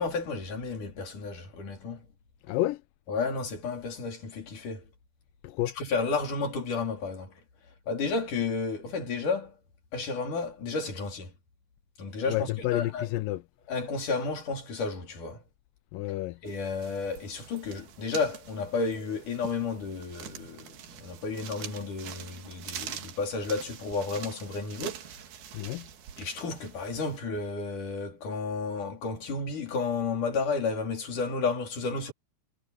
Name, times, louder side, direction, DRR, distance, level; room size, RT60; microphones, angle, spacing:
voice 1, 0.0-2.0 3.1-4.8 5.8-7.4 7.9-9.5 9.9-11.3 12.0-13.1 13.7-15.4 16.4-25.1 26.2-32.1, left 4 dB, 55° left, 5.5 m, -32 dB
voice 2, 2.5-2.8 5.4-5.7 12.3-13.4 15.9-16.4 25.5-25.9, left 16 dB, 80° left, 2.1 m, -30 dB
sound 1, 16.5-27.2, right 10 dB, 75° right, 3.7 m, -45 dB
omnidirectional pair, 4.4 m